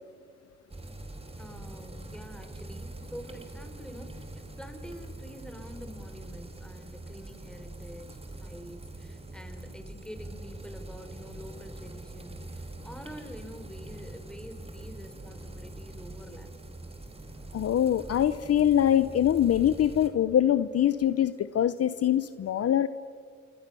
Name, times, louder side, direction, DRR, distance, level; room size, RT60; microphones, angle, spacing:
sound 1, 0.7-20.1, right 2 dB, 20° right, 3.3 m, -43 dB
voice 1, 1.4-16.5, equal, 5° left, 6 dB, 4.3 m, -47 dB
voice 2, 17.5-22.9, left 10 dB, 55° left, 14 dB, 0.9 m, -24 dB
26.5 x 26.0 x 7.0 m, 2.1 s
cardioid pair, 90°, 30 cm